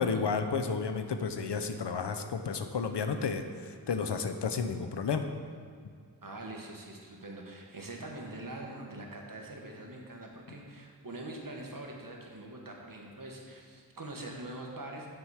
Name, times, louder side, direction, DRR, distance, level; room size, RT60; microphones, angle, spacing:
voice 1, 0.0-5.2, left 5 dB, 80° left, 8 dB, 0.6 m, -32 dB
voice 2, 6.2-15.1, right 2 dB, 50° right, 0 dB, 1.3 m, -43 dB
7.7 x 4.7 x 5.7 m, 2.1 s
wide cardioid pair, 45°, 41 cm